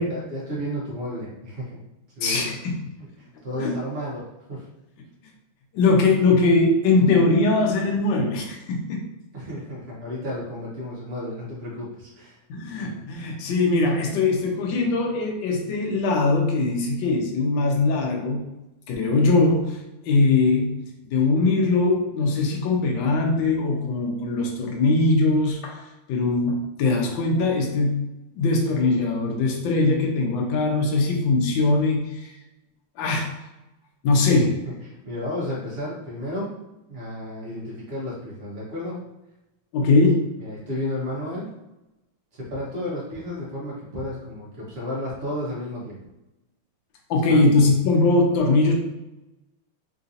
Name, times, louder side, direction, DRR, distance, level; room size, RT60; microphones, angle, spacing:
voice 1, 0.0-1.8 2.2-2.5 3.0-4.7 9.3-12.4 34.1-34.4 34.6-36.5 36.9-39.0 40.4-41.5 42.3-46.0 47.3-47.4, left 1 dB, 75° right, -6 dB, 0.5 m, -32 dB
voice 2, 2.2-2.7 3.6-3.7 5.7-9.0 12.5-18.4 18.9-19.8 20.0-20.8 21.1-25.8 26.1-32.3 33.0-33.3 34.0-34.5 39.7-40.3 47.1-48.7, left 3 dB, 70° left, 1 dB, 1.2 m, -21 dB
3.8 x 2.7 x 2.5 m, 0.97 s
omnidirectional pair, 2.4 m